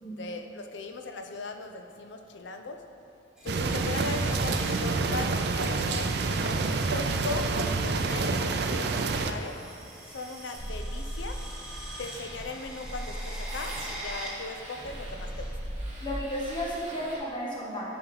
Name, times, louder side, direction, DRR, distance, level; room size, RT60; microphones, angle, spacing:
voice 1, 0.1-3.1 3.4-6.1 6.4-9.6 10.0-11.4 12.0-15.5, left 3 dB, 70° left, 5 dB, 0.6 m, -38 dB
sound 1, 3.4-4.7 6.0-6.3 7.3-15.5, right 1 dB, 5° right, 1.1 m, -44 dB
sound 2, 3.5-9.3, right 3 dB, 60° right, 0.4 m, -28 dB
sound 3, 10.6-17.2, equal, 35° right, 1.6 m, -38 dB
voice 2, 16.0-17.9, equal, 25° left, -6 dB, 1.6 m, -33 dB
10.0 x 5.2 x 4.0 m, 2.9 s
head